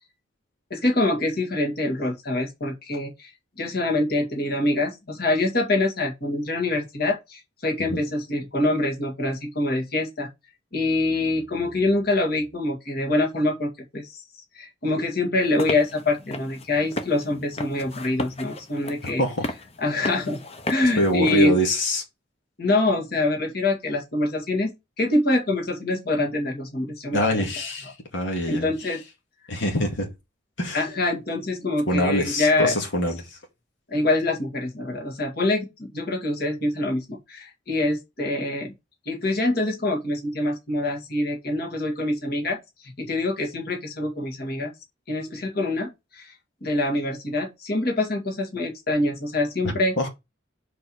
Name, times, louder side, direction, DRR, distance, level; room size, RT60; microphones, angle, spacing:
voice 1, 0.7-3.3 3.6-10.3 10.7-14.2 14.5-19.2 19.8-20.4 20.7-21.5 22.6-24.7 25.0-27.5 28.5-29.0 30.7-32.7 33.9-38.7 39.1-42.6 42.8-44.7 45.1-46.3 46.6-50.0, left 2 dB, 55° left, 2.2 m, -25 dB
sound 1, 15.4-21.4, left 1 dB, 35° left, 1.0 m, -35 dB
voice 2, 21.0-22.0 27.1-28.7 29.5-30.1 30.6-30.8 31.9-33.4 49.6-50.1, equal, 80° left, 2.2 m, -24 dB
5.2 x 4.6 x 6.2 m
head